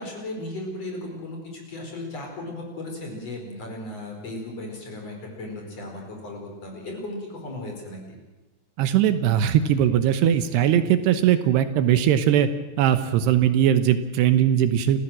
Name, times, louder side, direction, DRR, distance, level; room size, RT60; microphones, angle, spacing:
voice 1, 0.0-8.2, left 1 dB, 35° left, 2 dB, 5.5 m, -36 dB
voice 2, 8.8-12.5 12.8-15.0, right 10 dB, 80° right, 10 dB, 3.0 m, -20 dB
29.5 x 15.0 x 7.6 m, 1.1 s
omnidirectional pair, 5.0 m